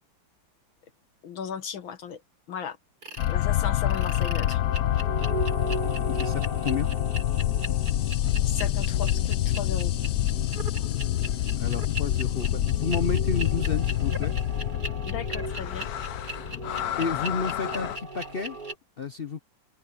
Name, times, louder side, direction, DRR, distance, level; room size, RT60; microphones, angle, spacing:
voice 1, 1.2-2.2 2.5-2.8 3.3-4.6 8.5-9.9 15.1-15.9, left 7 dB, 80° left, 2.3 m, -36 dB
sound 1, 3.0-3.3 3.9-18.7, right 2 dB, 50° right, 6.6 m, -37 dB
sound 2, 3.2-18.0, left 13 dB, 65° left, 1.0 m, -27 dB
voice 2, 6.1-6.9 11.6-14.3 17.0-18.6 19.0-19.4, left 5 dB, 50° left, 0.7 m, -31 dB
omnidirectional pair, 2.1 m